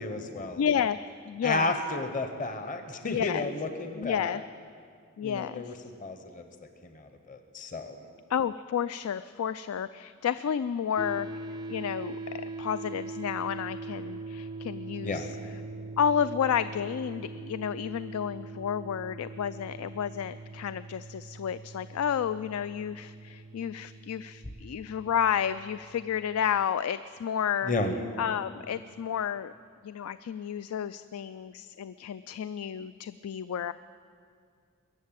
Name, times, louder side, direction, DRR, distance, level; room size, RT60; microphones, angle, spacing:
voice 1, 0.0-0.6 1.4-4.4 5.2-5.7 6.0-6.4 6.8-8.0 15.0-15.3 27.6-27.9, left 2 dB, 35° left, 6 dB, 1.0 m, -32 dB
voice 2, 0.5-1.7 3.0-3.5 4.0-4.4 5.2-5.8 8.3-11.3 11.7-15.4 16.0-27.7 28.2-29.5 29.8-33.7, left 8 dB, 90° left, 14 dB, 0.3 m, -31 dB
sound 1, 11.0-26.2, right 3 dB, 20° right, 0.4 m, -42 dB
21.5 x 7.4 x 8.8 m, 2.2 s
head